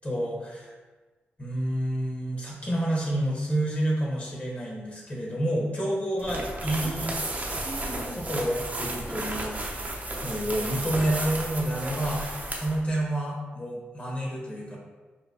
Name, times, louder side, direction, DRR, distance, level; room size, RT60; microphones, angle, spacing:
voice 1, 0.0-0.7 1.4-7.1 8.1-9.6 10.2-14.8, right 1 dB, 30° left, -3 dB, 1.3 m, -29 dB
sound 1, 6.2-12.8, right 1 dB, 35° right, 0.8 m, -33 dB
5.9 x 2.2 x 2.9 m, 1.3 s
cardioid pair, 55°, 5 cm